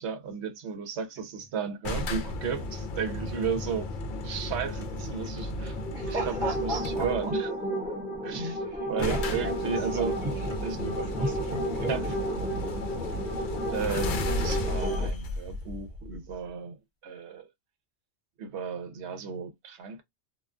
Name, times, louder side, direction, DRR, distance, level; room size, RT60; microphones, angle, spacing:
voice 1, 0.0-4.0 4.2-5.8 6.0-7.5 8.2-8.6 8.9-10.2 10.6-10.8 11.9-12.1 13.7-17.5 18.4-20.0, right 6 dB, 85° right, 0.9 m, -34 dB
sound 1, 1.8-7.4 8.4-8.5 8.6-8.7 9.0-16.5, left 1 dB, 60° left, 0.6 m, -34 dB
sound 2, 5.6-15.1, right 1 dB, 5° right, 0.7 m, -33 dB
voice 2, 5.9-7.1 8.3-8.6 9.0-9.5 9.9-10.3 10.8-12.2 12.4-12.5, right 1 dB, 50° right, 1.0 m, -34 dB
2.3 x 2.2 x 2.4 m
omnidirectional pair, 1.1 m